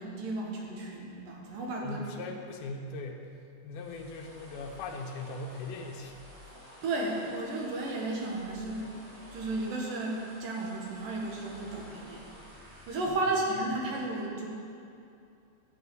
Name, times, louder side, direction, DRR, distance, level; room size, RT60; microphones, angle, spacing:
voice 1, 0.0-2.0 6.8-9.0 9.3-12.3 12.9-14.5, right 2 dB, 70° right, -2 dB, 2.9 m, -33 dB
voice 2, 1.8-3.3 3.6-6.2, left 3 dB, 85° left, 2 dB, 2.8 m, -39 dB
sound 1, 3.7-13.1, left 1 dB, 20° right, 1.4 m, -51 dB
11.5 x 5.4 x 8.3 m, 2.5 s
omnidirectional pair, 4.3 m